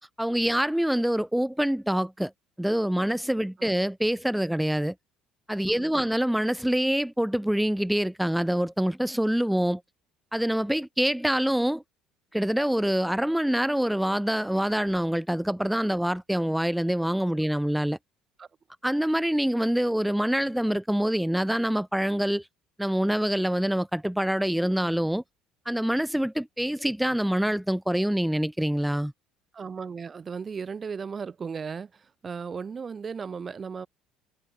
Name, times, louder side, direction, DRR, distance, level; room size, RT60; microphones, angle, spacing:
voice 1, 0.2-2.3 2.6-4.9 5.5-9.8 10.3-11.8 12.3-18.0 18.8-22.5 22.8-25.2 25.6-29.1, equal, 5° right, 1.7 m, -25 dB
voice 2, 5.7-6.1 18.4-18.5 29.5-33.9, right 6 dB, 30° right, 2.2 m, -36 dB
figure-of-eight pair, 55°, 0 cm